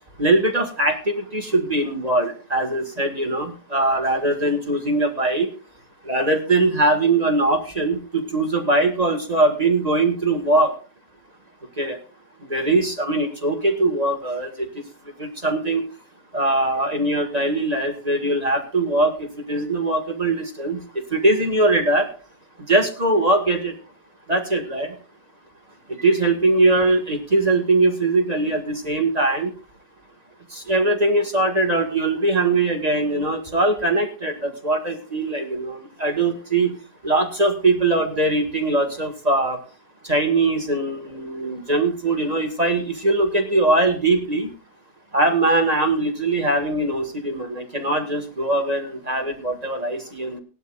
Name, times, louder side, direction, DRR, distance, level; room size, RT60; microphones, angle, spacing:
voice 1, 0.2-5.5 6.1-10.7 11.8-12.0 12.5-14.5 15.2-15.8 16.3-19.1 19.5-20.8 21.1-22.1 22.7-23.7 24.3-24.9 26.0-29.5 30.7-36.7 37.0-39.6 40.1-44.5 45.1-50.4, right 2 dB, 20° right, 3 dB, 1.7 m, -21 dB
18.5 x 12.0 x 2.5 m, 0.34 s
omnidirectional pair, 1.9 m